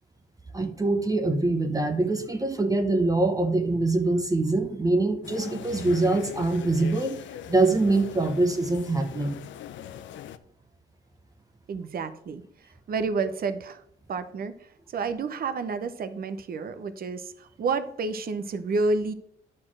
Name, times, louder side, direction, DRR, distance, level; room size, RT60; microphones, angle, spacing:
voice 1, 0.5-7.2 7.5-9.4, right 2 dB, 20° right, 6 dB, 0.9 m, -24 dB
sound 1, 5.2-10.4, left 11 dB, 70° left, 0.6 m, -41 dB
voice 2, 11.7-12.4 12.9-13.8 14.1-14.5 14.9-19.1, right 4 dB, 50° right, 11 dB, 0.8 m, -29 dB
9.7 x 4.3 x 6.2 m, 0.67 s
cardioid pair, 90°, 20 cm